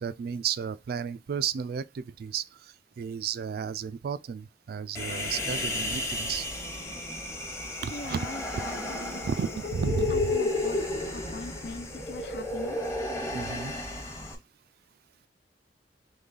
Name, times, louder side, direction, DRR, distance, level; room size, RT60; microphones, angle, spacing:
voice 1, 0.0-6.5 7.8-8.3 9.2-10.4 13.3-13.7, right 7 dB, 60° right, 0.3 m, -33 dB
Human voice, 4.9-14.3, left 2 dB, 15° left, 0.8 m, -32 dB
voice 2, 7.9-9.6 10.1-10.8 11.1-12.9, left 3 dB, 75° left, 0.6 m, -42 dB
3.8 x 3.1 x 3.9 m
head